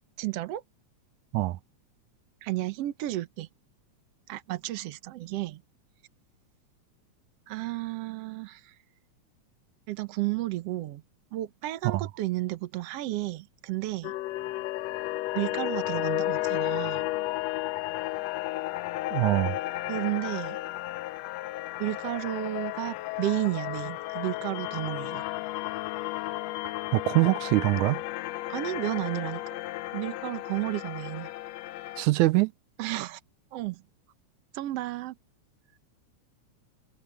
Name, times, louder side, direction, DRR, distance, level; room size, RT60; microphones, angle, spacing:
voice 1, 0.2-0.6 2.4-3.5 4.3-5.6 7.5-8.7 9.9-11.0 11.3-14.1 15.3-17.1 19.9-20.6 21.8-25.3 28.5-29.4 29.9-31.3 32.8-33.2 33.5-33.8 34.5-35.2, right 16 dB, 65° right, 1.9 m, -32 dB
sound 1, 14.0-32.1, left 17 dB, 80° left, 1.6 m, -33 dB
voice 2, 19.1-19.6 26.9-28.0 32.0-32.5, right 19 dB, 90° right, 2.1 m, -23 dB
omnidirectional pair, 3.3 m